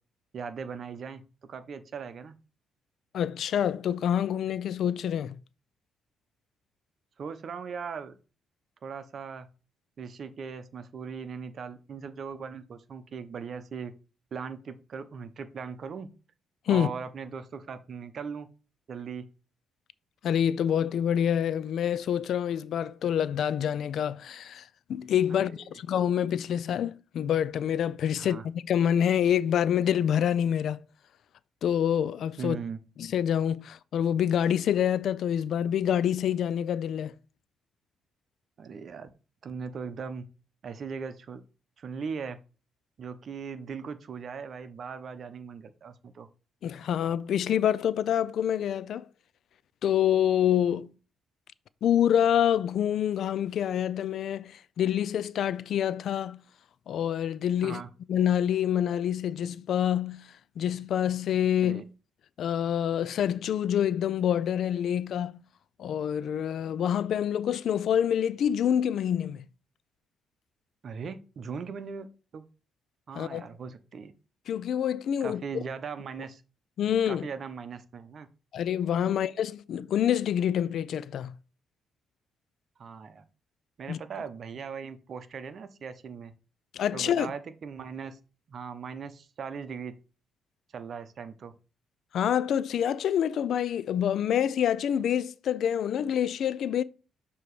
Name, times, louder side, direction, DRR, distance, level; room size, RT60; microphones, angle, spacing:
voice 1, 0.3-2.3 7.2-8.1 8.8-9.5 10.0-13.9 14.3-16.1 16.7-18.5 18.9-19.2 25.3-25.8 28.2-28.4 32.4-32.8 38.6-39.1 39.4-40.2 40.6-41.4 41.8-42.4 43.0-46.3 57.6-57.9 61.6-61.8 70.8-72.1 72.3-72.4 73.1-74.1 75.2-76.4 77.1-78.3 79.1-79.2 82.8-83.2 83.8-86.3 86.9-88.2 88.5-89.9 90.7-91.5, right 6 dB, 55° right, 0.7 m, -39 dB
voice 2, 3.1-5.3 16.7-16.9 20.2-30.8 31.6-32.6 33.0-37.1 46.6-49.1 49.8-50.9 51.8-56.4 56.9-57.8 58.1-60.3 60.6-61.8 62.4-65.3 65.8-69.4 73.2-73.5 74.5-75.4 76.8-77.3 78.5-81.3 83.9-84.0 86.7-87.3 92.1-96.8, left 9 dB, 70° left, 0.3 m, -27 dB
6.9 x 2.9 x 4.7 m
cardioid pair, 90°, 0 cm